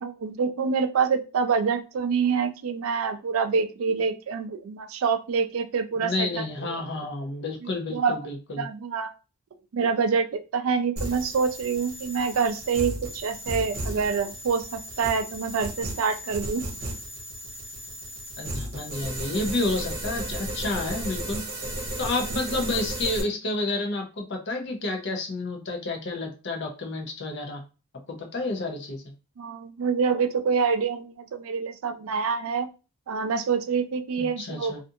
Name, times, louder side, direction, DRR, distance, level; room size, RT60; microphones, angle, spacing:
voice 1, 0.0-6.4 7.6-8.2 8.6-9.1 9.7-10.3 10.5-16.6 29.4-32.7 33.1-34.7, right 5 dB, 70° right, 9 dB, 0.4 m, -26 dB
voice 2, 6.0-8.7 18.4-21.4 22.0-27.6 28.1-29.0 34.2-34.8, left 2 dB, 50° left, 2 dB, 0.6 m, -30 dB
sound 1, 11.0-23.2, right 1 dB, 45° right, 0.8 m, -34 dB
2.5 x 2.4 x 2.6 m, 0.32 s
head